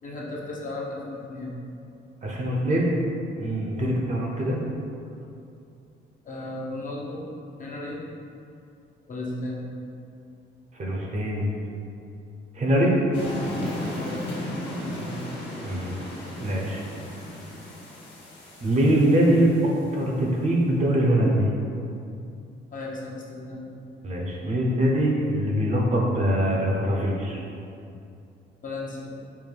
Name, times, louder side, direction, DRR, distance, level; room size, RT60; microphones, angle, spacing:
voice 1, 0.0-1.6 3.8-4.0 6.2-7.2 7.6-8.0 9.1-9.6 13.9-14.2 14.5-15.2 22.7-23.7 28.6-29.1, left 2 dB, 40° left, -4 dB, 0.8 m, -35 dB
voice 2, 2.2-3.0 3.4-4.6 10.8-11.5 12.5-13.0 15.6-16.0 16.4-16.8 18.6-19.5 19.9-21.5 24.0-27.4, right 1 dB, 35° right, -2 dB, 0.7 m, -23 dB
sound 1, 13.1-19.8, left 1 dB, 60° left, 1.2 m, -35 dB
5.5 x 2.1 x 3.3 m, 2.6 s
cardioid pair, 90°, 20 cm